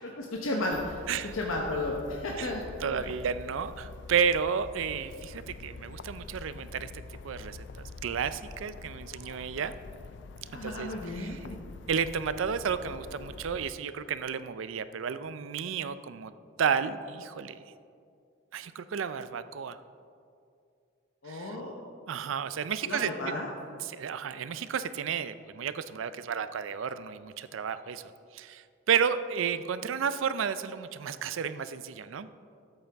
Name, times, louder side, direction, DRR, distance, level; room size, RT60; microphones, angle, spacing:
voice 1, 0.0-1.0 1.3-3.2 10.5-11.6 21.2-21.7 22.8-23.5, left 2 dB, 80° left, -1 dB, 0.9 m, -34 dB
sound 1, 0.7-13.7, left 3 dB, 60° left, 0.4 m, -46 dB
voice 2, 2.8-6.9 7.2-9.7 10.6-11.4 11.9-16.3 16.6-17.6 18.5-19.8 21.3-21.6 22.1-23.1 23.8-28.0 28.3-32.3, right 7 dB, 75° right, 13 dB, 0.4 m, -32 dB
12.5 x 8.0 x 3.4 m, 2.4 s
head